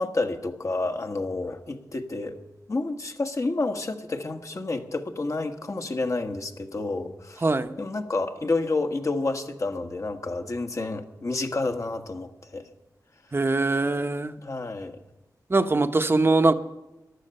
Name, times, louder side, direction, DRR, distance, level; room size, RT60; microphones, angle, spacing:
voice 1, 0.0-2.4 2.7-7.5 7.8-12.7 14.4-15.0, left 3 dB, 45° left, 6 dB, 1.4 m, -29 dB
voice 2, 7.4-7.7 13.3-14.3 15.5-16.5, right 3 dB, 35° right, 9 dB, 0.9 m, -22 dB
14.5 x 11.5 x 6.7 m, 0.99 s
wide cardioid pair, 80°, 7 cm